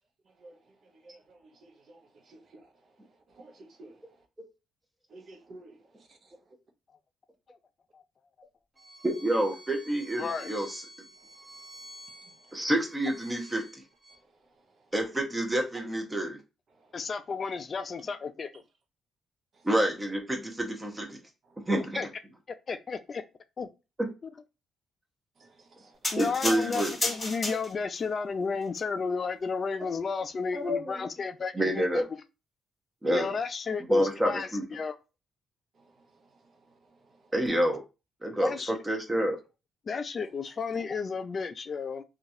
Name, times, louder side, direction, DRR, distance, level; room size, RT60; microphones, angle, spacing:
voice 1, 0.2-4.3 5.1-6.5 11.2-12.7 14.1-14.9 16.7-17.1 19.5-19.7 21.4-21.7 25.4-26.2 35.7-37.3 40.4-40.5, right 2 dB, 50° right, 0.8 m, -56 dB
Bowed string instrument, 8.8-14.2, right 1 dB, 35° right, 1.5 m, -49 dB
voice 2, 9.0-10.8 12.5-13.8 14.9-16.4 19.6-21.2 21.7-22.0 24.0-24.1 26.2-26.9 30.5-30.8 31.5-32.0 33.0-33.3 33.9-34.6 37.3-37.8 38.2-39.4, right 1 dB, 15° right, 0.9 m, -28 dB
voice 3, 10.2-10.5 16.9-18.5 22.0-22.1 22.5-23.2 23.6-23.7 26.1-32.2 33.1-35.0 38.4-38.8 39.9-42.0, left 5 dB, 40° left, 0.3 m, -33 dB
sound 1, 26.0-28.0 28.7-28.8, left 1 dB, 15° left, 1.6 m, -32 dB
2.9 x 2.4 x 2.7 m
cardioid pair, 90°, 0 cm